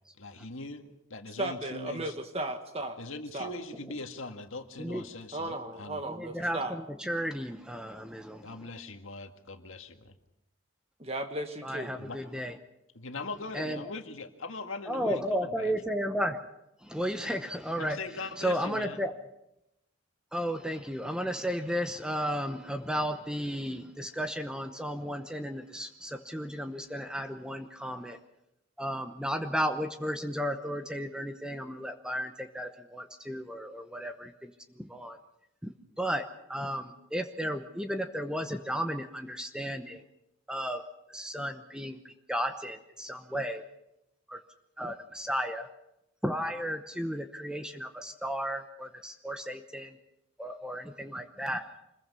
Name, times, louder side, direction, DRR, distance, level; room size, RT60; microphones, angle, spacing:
voice 1, 0.2-2.1 3.0-6.1 8.4-10.1 12.0-12.2 12.9-15.8 16.9-17.0 17.8-19.0, left 3 dB, 75° left, 5 dB, 1.8 m, -41 dB
voice 2, 1.4-3.0 3.3-3.6 5.3-6.8 11.0-12.0, right 1 dB, 30° right, 6 dB, 1.6 m, -35 dB
voice 3, 6.1-8.5 11.6-12.5 13.5-13.9 14.9-16.4 16.8-18.0 18.4-19.1 20.3-28.2 28.8-35.2 35.6-35.7 36.0-40.0 40.5-40.8 41.1-43.6 44.3-44.4 44.8-45.7 46.2-50.0 50.4-51.6, equal, 5° right, 7 dB, 0.9 m, -34 dB
25.5 x 21.5 x 5.5 m, 0.88 s
head